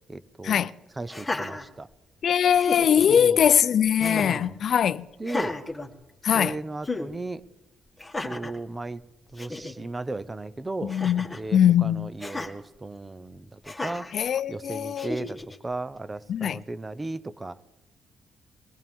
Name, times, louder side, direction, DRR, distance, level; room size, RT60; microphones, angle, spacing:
voice 1, 0.1-0.7 1.0-1.9 3.1-3.5 4.0-4.6 5.2-5.6 6.3-7.4 8.2-9.0 9.3-11.0 11.3-14.1 14.5-15.4 15.6-17.6, right 2 dB, 20° right, 0.7 m, -35 dB
Laughter, 1.1-2.2 2.5-3.2 4.0-4.5 5.2-6.4 6.8-7.1 8.0-8.6 9.1-9.2 9.4-9.7 10.9-11.5 12.2-12.5 13.6-14.1 15.0-15.6, left 2 dB, 10° left, 2.0 m, -34 dB
voice 2, 2.2-5.0 6.2-6.6 10.8-11.2 11.5-12.1 14.1-15.1 16.3-16.6, left 9 dB, 60° left, 0.5 m, -21 dB
22.5 x 17.0 x 3.6 m
cardioid pair, 90°, 0 cm